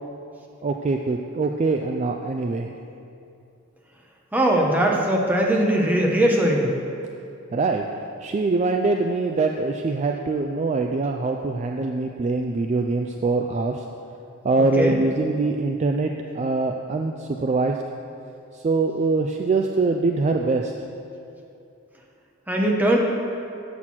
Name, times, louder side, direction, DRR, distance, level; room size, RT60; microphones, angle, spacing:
voice 1, 0.6-2.7 7.5-7.9 8.2-13.8 14.4-17.8 18.6-20.7, right 3 dB, 35° right, 3 dB, 0.3 m, -23 dB
voice 2, 4.3-6.7 14.8-15.0 22.5-23.0, right 1 dB, 10° right, -1 dB, 0.8 m, -20 dB
7.8 x 6.1 x 5.8 m, 2.7 s
head